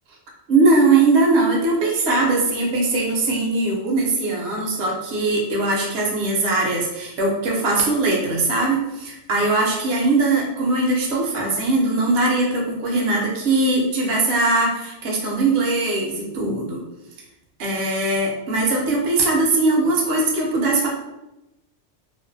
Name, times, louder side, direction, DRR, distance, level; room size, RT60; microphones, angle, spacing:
voice 1, 0.5-16.8 17.6-20.9, right 2 dB, 65° right, -2 dB, 0.8 m, -20 dB
2.5 x 2.1 x 2.5 m, 0.93 s
omnidirectional pair, 1.2 m